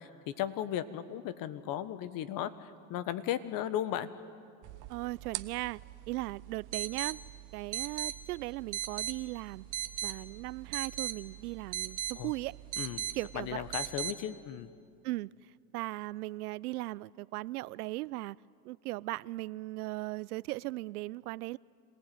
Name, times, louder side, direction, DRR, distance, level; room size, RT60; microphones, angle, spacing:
voice 1, 0.0-4.1 12.2-12.3 12.8-13.0 13.3-14.7, left 11 dB, 50° left, 1.3 m, -36 dB
sound 1, 4.6-14.1, right 11 dB, 45° right, 1.0 m, -39 dB
voice 2, 4.9-5.8 6.1-7.2 7.5-9.6 10.0-12.6 13.1-13.6 15.0-15.3 15.7-18.4 18.6-21.6, right 19 dB, 85° right, 0.6 m, -38 dB
26.5 x 18.0 x 9.4 m
supercardioid pair, 105°, 45 cm